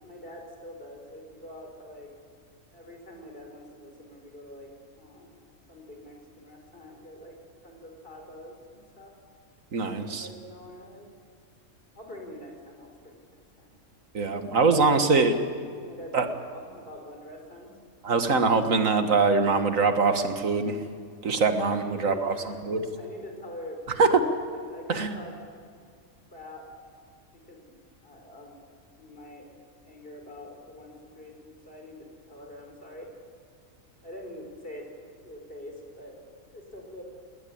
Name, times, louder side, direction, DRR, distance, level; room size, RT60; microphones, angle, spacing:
voice 1, 0.0-2.1 2.7-5.4 5.7-7.4 7.6-9.1 10.0-11.1 11.9-13.2 13.6-13.7 14.6-17.7 21.8-22.6 22.9-25.4 26.3-26.7 27.3-27.8 28.0-28.6 29.0-29.5 29.8-33.1 34.0-34.9 35.2-36.2 36.5-37.0, left 1 dB, 40° left, 2 dB, 5.0 m, -44 dB
voice 2, 9.7-10.3 14.1-15.3 16.1-16.3 18.0-20.8 21.2-22.3 22.6-22.8 24.0-24.2 24.9-25.1, right 4 dB, 75° right, 7 dB, 1.9 m, -23 dB
20.0 x 19.0 x 8.7 m, 2.2 s
omnidirectional pair, 1.4 m